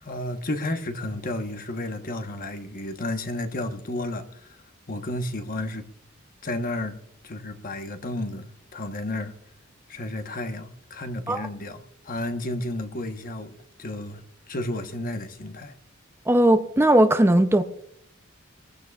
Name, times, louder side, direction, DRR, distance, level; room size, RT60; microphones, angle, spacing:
voice 1, 0.0-4.6 4.9-5.9 6.4-7.0 7.2-9.3 9.9-14.2 14.5-15.7, left 1 dB, 45° left, 1.1 m, -32 dB
voice 2, 16.3-17.6, right 1 dB, 10° right, 0.5 m, -18 dB
21.0 x 15.0 x 2.3 m
head